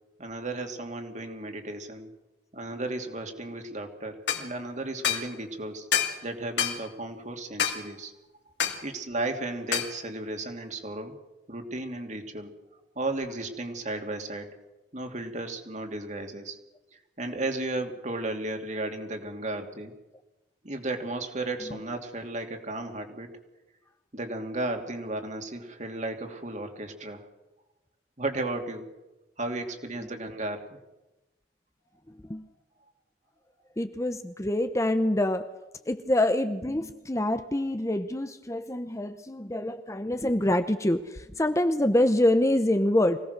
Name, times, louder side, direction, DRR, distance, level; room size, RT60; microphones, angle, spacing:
voice 1, 0.2-2.1 2.5-5.9 6.2-8.1 8.8-11.2 11.5-12.5 13.0-14.5 14.9-16.6 16.9-19.9 20.6-23.3 24.1-27.2 28.2-28.9 29.4-30.6, right 2 dB, 40° right, 2.8 m, -34 dB
sound 1, 4.3-4.5 5.0-5.3 5.9-6.2 6.6-6.8 7.6-7.8 8.6-8.8 9.7-9.9, left 8 dB, 70° left, 2.7 m, -26 dB
voice 2, 33.8-35.5 35.9-43.2, left 1 dB, 15° left, 0.9 m, -26 dB
25.0 x 17.5 x 6.8 m
head